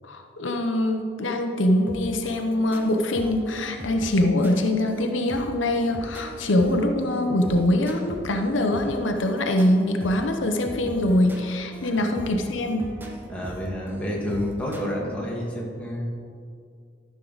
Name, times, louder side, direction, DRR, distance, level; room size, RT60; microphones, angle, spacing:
voice 1, 0.0-12.9, left 1 dB, 85° left, 4 dB, 0.8 m, -23 dB
sound 1, 1.9-14.8, equal, 10° right, 0.8 m, -41 dB
voice 2, 13.3-16.0, equal, 5° left, -4 dB, 1.8 m, -29 dB
13.0 x 6.4 x 4.0 m, 2.3 s
head